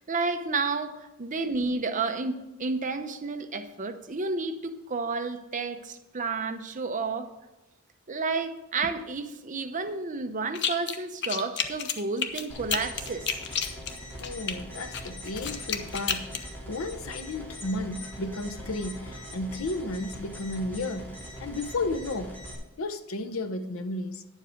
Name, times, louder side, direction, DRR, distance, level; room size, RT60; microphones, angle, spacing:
voice 1, 0.0-7.3 8.1-13.3, right 4 dB, 40° right, 0.7 m, -31 dB
sound 1, 10.5-11.0 11.2-14.5 14.9-16.4, left 7 dB, 60° left, 0.8 m, -30 dB
sound 2, 12.5-22.5, equal, 10° left, 2.5 m, -42 dB
voice 2, 14.2-16.2 16.7-21.1 21.4-22.3 22.8-24.2, left 2 dB, 90° left, 0.8 m, -33 dB
9.8 x 7.3 x 5.1 m
head